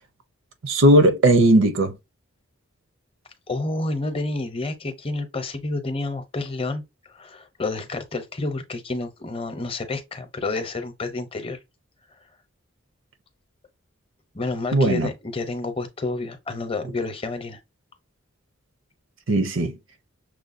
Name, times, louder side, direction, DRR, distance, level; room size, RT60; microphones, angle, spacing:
voice 1, 0.6-1.9 14.7-15.1 19.3-19.7, right 1 dB, 70° right, 0.6 m, -17 dB
voice 2, 3.5-6.8 7.1-11.6 14.3-17.6, left 2 dB, 25° left, 0.7 m, -29 dB
6.2 x 2.2 x 2.5 m
head